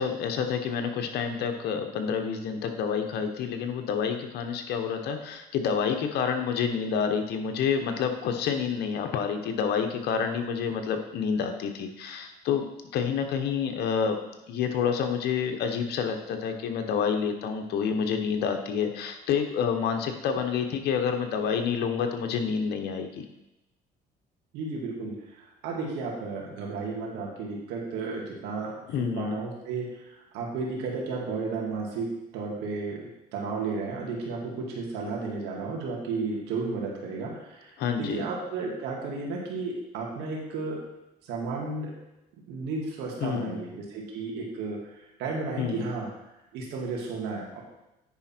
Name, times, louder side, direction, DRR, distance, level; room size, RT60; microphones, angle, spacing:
voice 1, 0.0-12.6 12.9-14.2 14.5-23.2 28.9-29.4 37.8-38.3 43.2-43.6 45.6-45.9, left 6 dB, 75° left, 5 dB, 1.1 m, -28 dB
voice 2, 24.5-30.1 30.3-40.8 41.2-41.9 42.5-44.8 45.2-46.1 46.5-47.6, right 4 dB, 90° right, -2 dB, 2.2 m, -33 dB
9.7 x 5.1 x 4.5 m, 0.93 s
cardioid pair, 110°, 17 cm